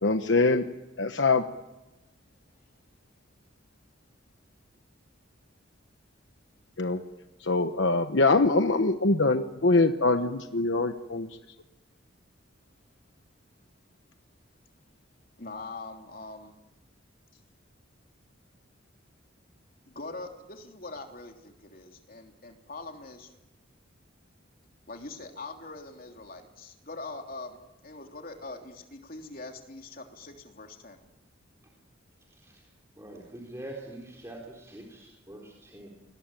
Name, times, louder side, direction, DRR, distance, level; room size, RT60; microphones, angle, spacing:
voice 1, 0.0-0.7 1.0-1.4 6.8-7.0 7.4-11.3, left 3 dB, 65° left, 7 dB, 1.1 m, -23 dB
voice 2, 15.4-16.6 19.9-23.3 24.9-31.0, left 3 dB, 45° left, 3 dB, 3.2 m, -43 dB
voice 3, 32.9-35.9, right 1 dB, 15° right, -1 dB, 3.8 m, -44 dB
29.0 x 22.0 x 9.2 m, 1.1 s
head